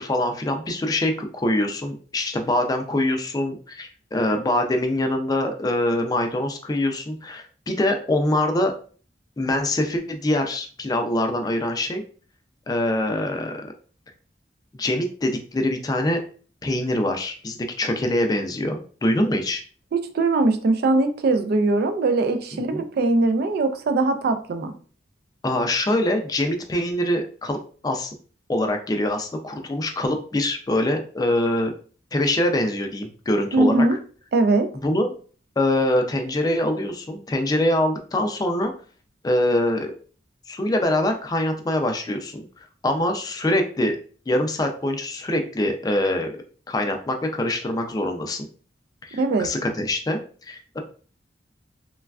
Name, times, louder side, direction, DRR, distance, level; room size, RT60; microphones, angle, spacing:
voice 1, 0.0-8.7 9.4-12.0 12.7-13.5 14.7-16.2 16.6-19.6 22.7-22.8 25.4-27.6 27.8-28.1 28.5-31.7 32.1-33.9 34.8-35.1 35.6-38.7 39.2-39.9 40.5-42.4 42.8-44.0 44.3-46.3 46.7-48.5 49.0-50.8, left 1 dB, 20° left, 5 dB, 0.4 m, -24 dB
voice 2, 20.1-24.7 33.5-34.0 34.3-34.7 49.2-49.5, right 2 dB, 60° right, 8 dB, 0.3 m, -21 dB
3.2 x 2.2 x 2.3 m, 0.41 s
head